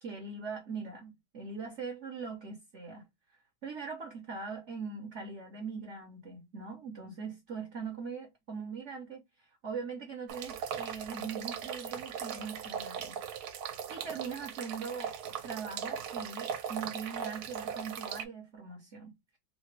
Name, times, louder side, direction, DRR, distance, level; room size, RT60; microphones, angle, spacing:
voice 1, 0.0-3.1 3.6-9.2 9.6-13.2 13.9-15.1 15.4-19.4, right 5 dB, 55° right, 0.8 m, -41 dB
sound 1, 10.3-18.2, right 8 dB, 90° right, 1.5 m, -39 dB
3.9 x 2.1 x 3.2 m
omnidirectional pair, 2.3 m